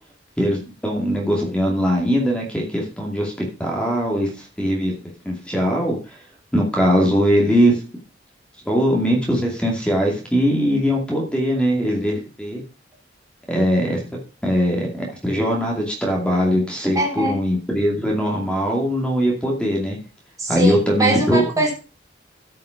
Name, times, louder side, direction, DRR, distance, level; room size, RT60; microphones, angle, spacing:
voice 1, 0.4-3.3 3.6-4.3 4.6-5.0 5.2-6.0 6.5-7.8 8.7-12.6 13.5-14.0 14.4-20.0 20.5-21.6, equal, 5° left, -1 dB, 2.4 m, -20 dB
voice 2, 16.9-17.3 20.4-21.7, right 1 dB, 20° right, 0 dB, 3.2 m, -22 dB
12.5 x 5.8 x 5.1 m, 0.34 s
head